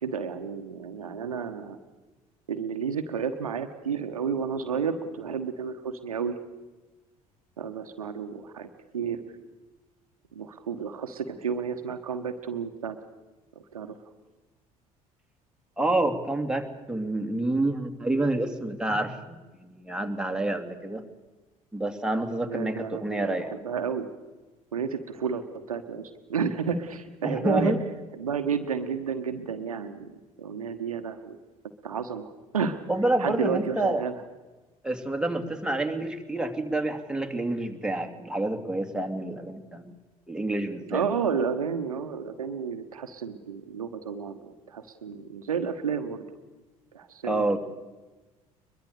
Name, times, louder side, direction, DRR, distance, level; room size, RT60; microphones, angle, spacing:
voice 1, 0.0-1.8 2.5-6.3 7.6-9.2 10.3-13.0 13.7-13.9 22.5-24.1 24.7-27.7 28.2-30.1 30.4-31.4 31.8-32.8 33.2-34.1 40.9-46.2 46.9-47.5, right 6 dB, 75° right, 8 dB, 1.3 m, -31 dB
voice 2, 15.8-21.0 21.7-23.6 27.2-27.8 32.9-34.0 34.8-39.9 40.3-41.0 47.2-47.6, right 2 dB, 5° right, 5 dB, 2.6 m, -28 dB
22.5 x 22.5 x 6.8 m, 1.2 s
figure-of-eight pair, 55°, 18 cm